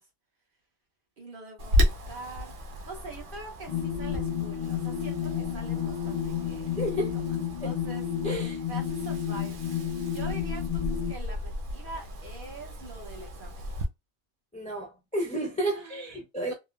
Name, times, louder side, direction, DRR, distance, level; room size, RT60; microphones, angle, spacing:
voice 1, 1.2-6.7 7.1-8.1 8.7-9.7 10.1-13.7 15.7-16.5, right 3 dB, 45° right, 1.1 m, -44 dB
Wind, 1.6-13.9, left 1 dB, 75° right, 1.1 m, -34 dB
sound 1, 3.7-11.1, left 9 dB, 60° left, 0.7 m, -31 dB
voice 2, 6.8-7.2 7.6-7.7 8.2-8.6 14.5-16.5, right 1 dB, 10° left, 0.4 m, -31 dB
3.5 x 2.1 x 2.2 m
omnidirectional pair, 1.3 m